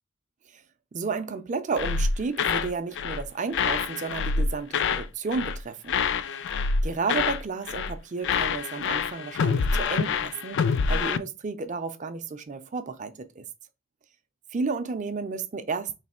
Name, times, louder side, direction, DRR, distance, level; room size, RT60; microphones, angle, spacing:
voice 1, 0.9-6.0 6.8-10.6 10.9-13.4 14.5-16.0, right 4 dB, 35° right, 0.5 m, -32 dB
sound 1, 1.8-2.7 3.0-3.2 3.5-5.1 5.3-5.6 5.9-7.4 7.7-8.0 8.2-11.2, left 5 dB, 60° left, 0.4 m, -26 dB
3.3 x 3.0 x 4.2 m
head